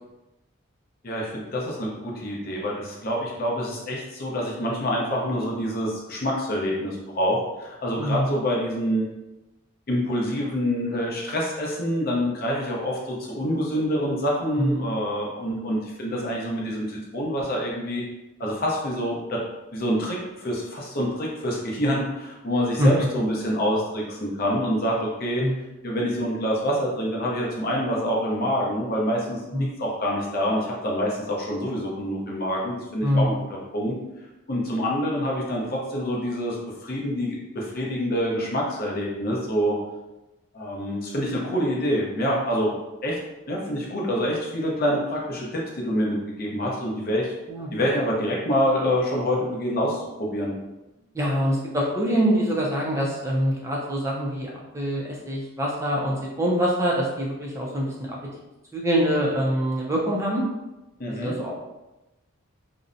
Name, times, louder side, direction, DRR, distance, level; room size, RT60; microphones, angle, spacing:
voice 1, 1.0-9.1 9.9-18.0 18.4-19.4 19.7-25.4 25.8-34.0 34.5-36.6 36.8-39.7 40.5-42.8 43.0-43.2 43.5-47.3 47.7-50.5 61.0-61.3, equal, 45° left, -3 dB, 0.6 m, -26 dB
voice 2, 8.0-8.3 14.6-14.9 22.8-22.9 25.4-25.6 29.5-29.7 33.0-33.4 47.5-47.7 51.1-57.9 58.7-60.4 61.1-61.5, equal, 15° right, -3 dB, 0.4 m, -24 dB
2.6 x 2.0 x 2.5 m, 1.0 s
head